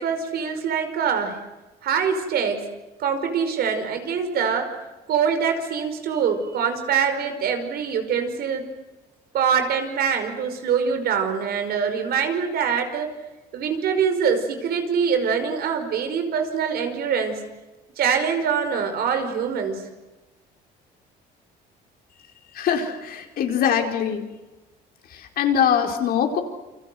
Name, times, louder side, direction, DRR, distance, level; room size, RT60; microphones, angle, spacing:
voice 1, 0.0-1.4 1.8-2.7 3.0-4.7 5.1-8.7 9.3-13.1 13.5-17.4 18.0-19.8, right 6 dB, 65° right, 7 dB, 5.3 m, -24 dB
voice 2, 22.5-24.3 25.1-26.4, left 8 dB, 65° left, 3 dB, 4.7 m, -22 dB
29.0 x 25.0 x 7.9 m, 1.1 s
cardioid pair, 110°, 17 cm